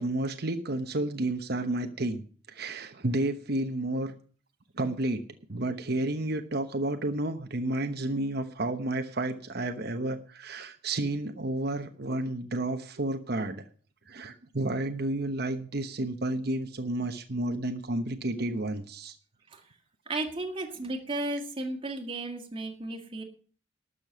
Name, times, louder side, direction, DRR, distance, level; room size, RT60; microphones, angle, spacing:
voice 1, 0.0-2.2 2.5-4.1 4.8-5.2 5.5-13.6 14.1-19.2, right 2 dB, 55° right, 7 dB, 1.1 m, -31 dB
voice 2, 20.1-23.2, right 2 dB, 30° right, 2 dB, 1.8 m, -34 dB
12.5 x 6.9 x 9.2 m, 0.41 s
head